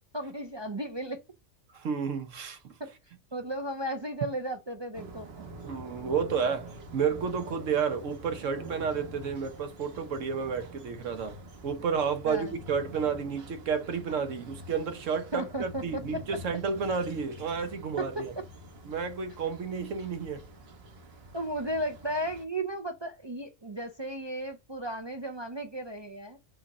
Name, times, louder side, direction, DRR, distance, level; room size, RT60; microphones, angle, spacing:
voice 1, 0.1-1.2 2.8-2.9 3.3-5.4 12.3-12.5 15.3-16.4 18.0-18.3 21.3-26.4, right 1 dB, 40° right, 0.4 m, -35 dB
voice 2, 1.7-2.7 5.7-18.3 18.8-20.4, right 6 dB, 80° right, 1.3 m, -31 dB
sound 1, 4.9-22.4, right 1 dB, 55° right, 1.2 m, -46 dB
5.6 x 4.2 x 6.1 m
omnidirectional pair, 1.3 m